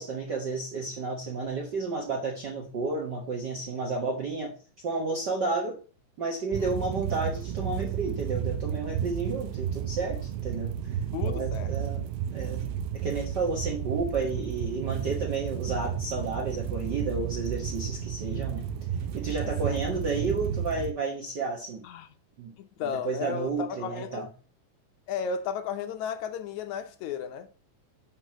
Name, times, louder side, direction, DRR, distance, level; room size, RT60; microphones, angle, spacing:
voice 1, 0.0-4.5 4.8-5.8 6.2-10.9 11.2-12.0 12.3-12.6 12.9-18.6 19.1-21.8 22.4-22.5 23.0-24.3, right 3 dB, 55° right, 1.1 m, -31 dB
sound 1, 6.5-20.9, right 9 dB, 75° right, 1.9 m, -32 dB
voice 2, 11.1-11.7 19.4-19.8 21.8-22.1 22.6-24.2 25.1-27.5, left 7 dB, 75° left, 2.0 m, -34 dB
6.1 x 5.4 x 6.0 m
omnidirectional pair, 3.6 m